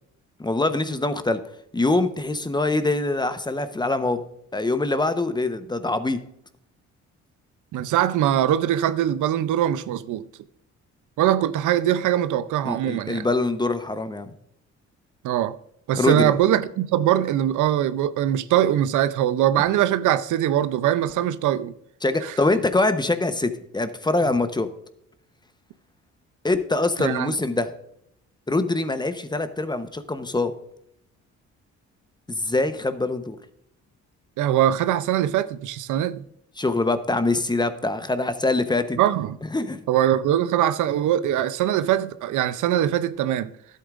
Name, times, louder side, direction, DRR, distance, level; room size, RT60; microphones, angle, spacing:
voice 1, 0.4-1.4 1.7-4.2 4.5-6.2 12.6-14.3 16.0-16.3 22.0-24.7 26.4-27.7 28.5-30.5 32.3-33.4 36.6-39.0 39.5-39.8, left 2 dB, 15° left, 0.9 m, -24 dB
voice 2, 7.7-10.3 11.2-13.3 15.2-15.5 15.9-21.7 22.2-22.3 27.0-27.3 34.4-36.2 39.0-39.4 39.9-43.5, right 11 dB, 80° right, 0.6 m, -22 dB
12.5 x 8.3 x 2.5 m
cardioid pair, 90°, 30 cm